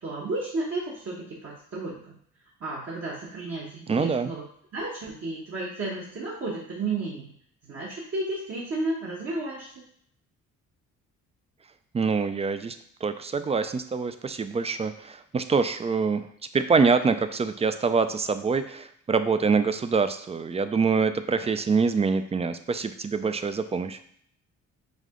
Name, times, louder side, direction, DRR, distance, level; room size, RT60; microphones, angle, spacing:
voice 1, 0.0-2.1 2.6-4.4 4.7-7.3 7.6-9.7, right 2 dB, 50° right, -6 dB, 1.1 m, -32 dB
voice 2, 3.9-4.3 11.9-12.8 13.0-16.3 16.5-24.0, right 5 dB, 20° right, 10 dB, 0.3 m, -25 dB
5.1 x 2.7 x 3.7 m, 0.66 s
cardioid pair, 90°, 30 cm